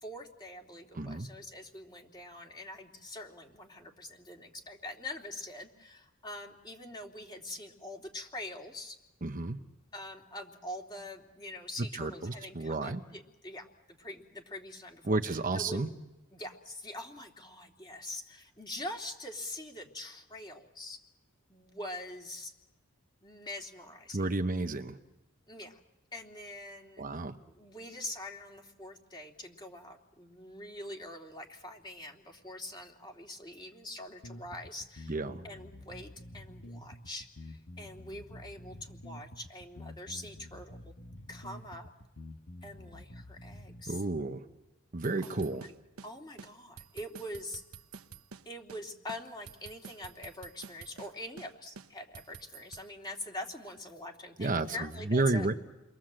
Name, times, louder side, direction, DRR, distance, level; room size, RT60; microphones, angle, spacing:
voice 1, 0.0-9.0 9.9-13.7 14.0-15.9 16.3-21.0 21.5-22.5 23.2-24.2 25.5-25.8 26.1-27.0 27.6-35.2 35.4-40.9 41.3-41.9 42.6-44.0 45.2-45.7 46.0-47.6 48.4-55.5, left 1 dB, 20° left, 1 dB, 3.0 m, -44 dB
voice 2, 0.9-1.3 9.2-9.6 11.8-13.0 15.0-15.9 24.1-25.0 27.0-27.4 35.1-35.4 43.9-44.5 44.9-45.6 54.4-55.5, right 2 dB, 40° right, 6 dB, 1.0 m, -31 dB
sound 1, 34.2-43.8, left 1 dB, 65° left, 1.5 m, -48 dB
sound 2, 45.0-46.1 46.4-46.5 46.8-48.4 48.7-48.8 49.1-51.1 51.4-51.5 51.8-52.9, right 5 dB, 90° right, 1.0 m, -49 dB
30.0 x 22.5 x 7.7 m, 1.0 s
head